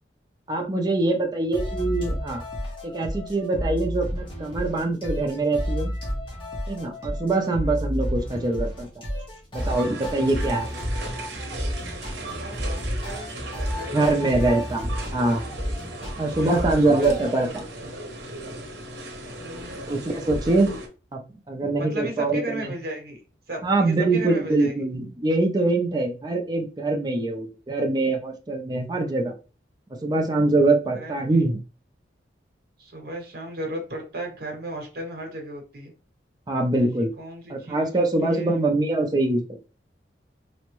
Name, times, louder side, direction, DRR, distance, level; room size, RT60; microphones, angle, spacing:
voice 1, 0.5-2.4 2.8-5.9 6.7-8.9 9.5-10.7 13.9-15.5 16.2-17.5 19.9-20.7 21.1-21.2 21.5-22.7 23.6-29.3 29.9-31.6 36.5-37.1 37.5-39.7, right 2 dB, 20° right, 1 dB, 0.4 m, -23 dB
sound 1, 1.5-17.3, equal, 30° left, 1.0 m, -31 dB
sound 2, 9.6-20.9, right 1 dB, 90° right, 0.7 m, -37 dB
voice 2, 12.2-14.5 16.0-17.9 19.4-20.0 21.8-23.2 23.5-24.7 30.9-31.4 32.8-35.9 36.8-36.9 37.2-37.9 38.2-38.7, right 1 dB, 55° right, 2 dB, 0.9 m, -36 dB
3.4 x 2.1 x 3.0 m, 0.34 s
head